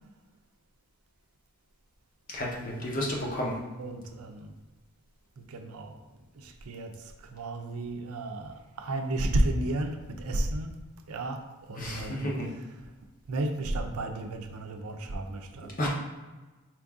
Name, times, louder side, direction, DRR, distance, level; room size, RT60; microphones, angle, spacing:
voice 1, 2.3-3.6 11.8-12.5 15.8-15.9, equal, 40° left, -3 dB, 0.8 m, -31 dB
voice 2, 3.8-4.5 5.4-6.0 6.4-10.7 11.1-12.3 13.3-15.7, right 1 dB, 85° right, 5 dB, 0.5 m, -32 dB
4.5 x 2.6 x 3.5 m, 1.2 s
head